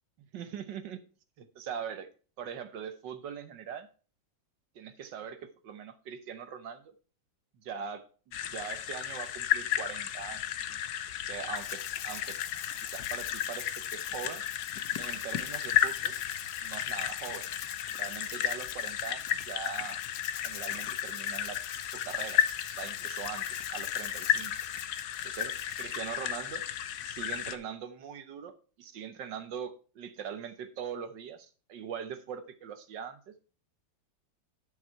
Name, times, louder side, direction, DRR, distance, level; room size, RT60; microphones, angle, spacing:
voice 1, 0.3-1.0 1.4-2.1 2.4-3.9 4.7-6.9 7.6-8.1 8.5-10.4 11.3-12.4 12.8-14.4 15.0-16.2 16.6-17.5 17.9-20.0 20.4-22.4 22.7-24.6 25.2-26.7 27.0-33.3, right 7 dB, 70° right, 10 dB, 1.6 m, -41 dB
sound 1, 8.3-27.6, left 10 dB, 65° left, 1.1 m, -33 dB
Rattle (instrument), 11.6-26.1, left 13 dB, 85° left, 1.4 m, -47 dB
10.5 x 6.0 x 4.5 m, 0.37 s
omnidirectional pair, 2.1 m